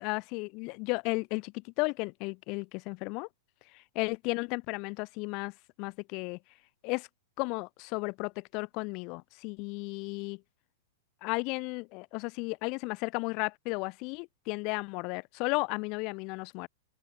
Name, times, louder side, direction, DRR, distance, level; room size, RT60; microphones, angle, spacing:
voice 1, 0.0-3.3 4.0-5.5 5.8-6.4 6.8-7.1 7.4-10.4 11.2-16.7, left 29 dB, 45° left, 2.2 m, -34 dB
open air
hypercardioid pair, 115°, 0 cm